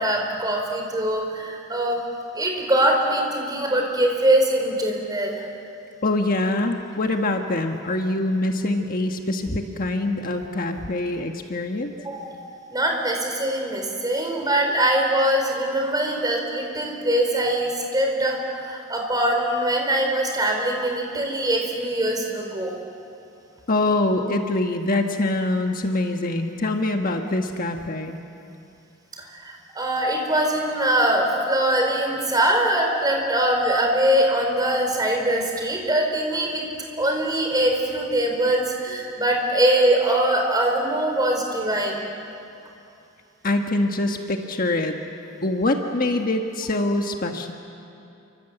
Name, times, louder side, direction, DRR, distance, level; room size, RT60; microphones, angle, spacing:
voice 1, 0.0-2.0 2.3-5.4 12.0-12.4 12.7-22.7 29.2-36.6 37.0-42.0, right 1 dB, 20° right, 1 dB, 4.5 m, -22 dB
voice 2, 6.0-11.9 23.7-28.2 43.4-45.0 45.4-47.5, left 2 dB, 40° left, 4 dB, 1.4 m, -24 dB
29.0 x 25.5 x 8.1 m, 2.7 s
head